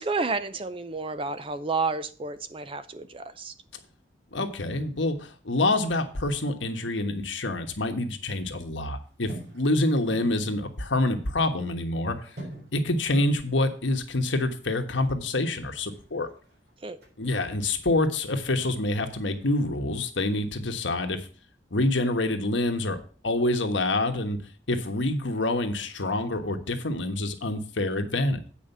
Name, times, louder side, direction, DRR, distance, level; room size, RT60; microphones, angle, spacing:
voice 1, 0.0-3.5 16.8-17.0, right 3 dB, 30° right, 0.5 m, -30 dB
voice 2, 4.3-12.3 12.7-16.3 17.2-21.3 21.7-23.0 23.2-24.4 24.7-28.5, left 2 dB, 90° left, 1.3 m, -27 dB
sound 1, 8.2-8.6 9.0-11.0 11.3-11.4 11.7-17.5 17.9-20.5 20.8-21.3, right 1 dB, 60° right, 4.0 m, -47 dB
8.7 x 5.0 x 6.6 m
head